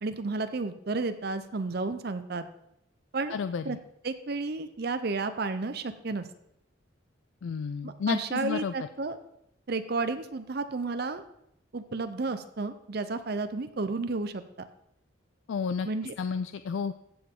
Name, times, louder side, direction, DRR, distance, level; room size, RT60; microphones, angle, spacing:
voice 1, 0.0-2.5 3.1-3.4 3.6-3.8 4.0-6.3 7.8-9.2 9.7-11.2 11.7-14.7 15.8-16.1, right 3 dB, 55° right, 10 dB, 0.6 m, -32 dB
voice 2, 3.3-3.8 7.4-8.7 15.5-15.9 16.2-16.9, left 6 dB, 75° left, 11 dB, 0.4 m, -31 dB
15.5 x 7.0 x 3.8 m, 0.77 s
head